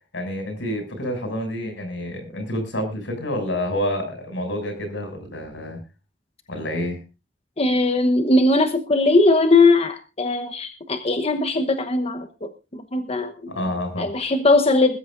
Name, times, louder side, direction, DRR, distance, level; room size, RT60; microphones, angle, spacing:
voice 1, 0.1-5.8 6.5-7.0 13.5-14.1, equal, 90° left, 5 dB, 6.7 m, -28 dB
voice 2, 7.6-13.5 14.0-15.0, left 2 dB, 35° left, 8 dB, 1.0 m, -19 dB
21.0 x 13.5 x 2.6 m, 0.29 s
head